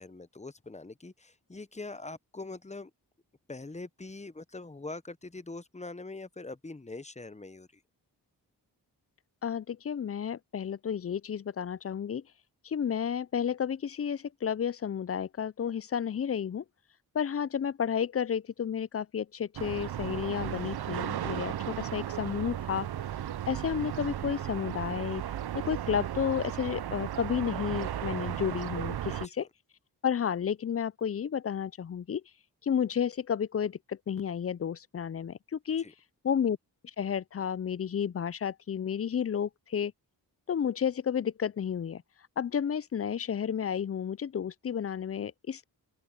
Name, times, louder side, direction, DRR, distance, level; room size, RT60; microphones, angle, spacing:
voice 1, 0.0-2.9 3.5-7.8 35.8-35.9, left 3 dB, 15° left, 0.9 m, -43 dB
voice 2, 9.4-12.2 12.6-16.6 17.1-22.9 23.5-25.2 25.5-29.5 30.0-32.2 32.6-35.9 36.2-36.6 36.8-39.9 40.5-42.0 42.4-45.6, left 8 dB, 35° left, 0.4 m, -31 dB
sound 1, 19.6-29.3, right 11 dB, 65° right, 0.6 m, -35 dB
open air
cardioid pair, 50°, 43 cm